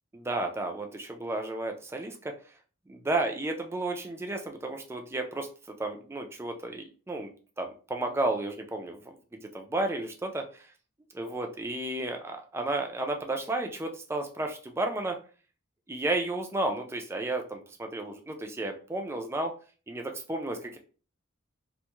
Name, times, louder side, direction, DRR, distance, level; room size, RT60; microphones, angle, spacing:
voice 1, 0.1-2.3 2.9-5.5 5.8-7.3 7.6-9.0 9.3-10.6 11.1-15.2 15.9-19.5 19.9-20.8, right 2 dB, 10° right, 4 dB, 0.3 m, -32 dB
2.5 x 2.3 x 2.9 m, 0.38 s
head